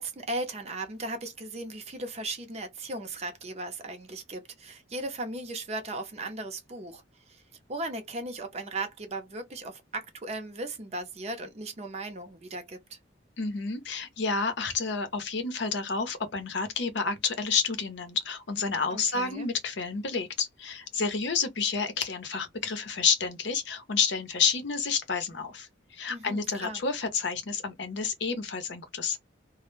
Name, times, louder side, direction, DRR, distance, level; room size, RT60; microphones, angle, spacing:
voice 1, 0.0-7.4 7.7-13.0 18.9-19.5 26.1-26.8, right 2 dB, 35° right, 0.5 m, -37 dB
voice 2, 13.4-29.2, left 5 dB, 65° left, 0.6 m, -30 dB
2.1 x 2.0 x 3.0 m
head